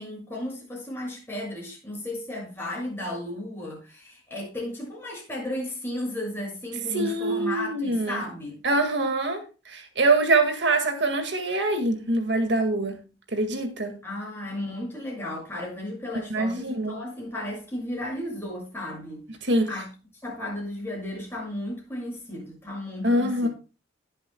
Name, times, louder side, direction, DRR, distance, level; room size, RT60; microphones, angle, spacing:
voice 1, 0.0-8.6 12.9-13.0 14.0-19.9 20.2-23.5, left 1 dB, 10° left, 6.7 m, -34 dB
voice 2, 6.9-8.2 8.6-13.0 13.3-14.0 16.3-17.0 19.4-19.7 23.0-23.5, right 2 dB, 65° right, 1.8 m, -24 dB
20.5 x 7.8 x 2.2 m
head